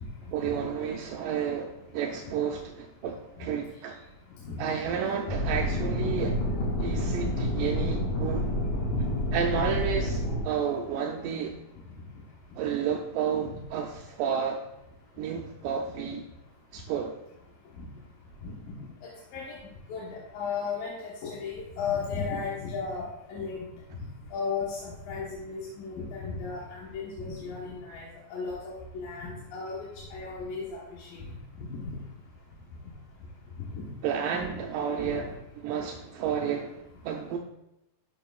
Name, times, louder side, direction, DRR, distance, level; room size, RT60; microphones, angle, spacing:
voice 1, 0.3-4.0 4.6-6.4 6.8-8.5 9.3-11.6 12.6-14.6 15.2-16.2 16.7-17.2 34.0-35.3 35.6-37.4, right 7 dB, 80° right, 2 dB, 2.1 m, -31 dB
sound 1, 5.3-10.4, left 1 dB, 65° left, 3.2 m, -28 dB
voice 2, 19.9-23.0 23.3-23.6 24.3-28.0 28.3-29.8 30.1-31.2 31.7-31.8 33.7-33.8 34.4-34.5, left 5 dB, 90° left, -5 dB, 3.0 m, -35 dB
12.5 x 6.7 x 2.4 m, 0.86 s
omnidirectional pair, 3.9 m